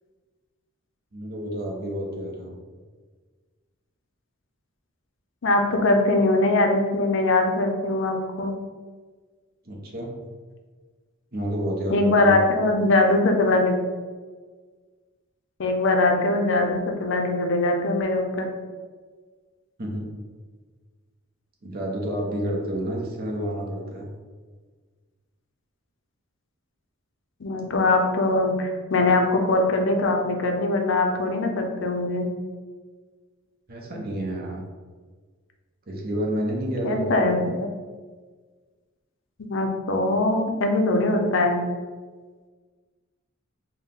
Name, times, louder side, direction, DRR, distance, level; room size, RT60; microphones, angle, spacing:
voice 1, 1.1-2.6 9.6-10.1 11.3-12.4 19.8-20.1 21.6-24.1 33.7-34.6 35.9-37.2, right 1 dB, 45° right, -1 dB, 0.7 m, -29 dB
voice 2, 5.4-8.5 11.9-13.8 15.6-18.5 27.4-32.3 36.8-37.7 39.4-41.6, left 2 dB, 60° left, 3 dB, 0.5 m, -22 dB
4.3 x 2.1 x 3.6 m, 1.4 s
head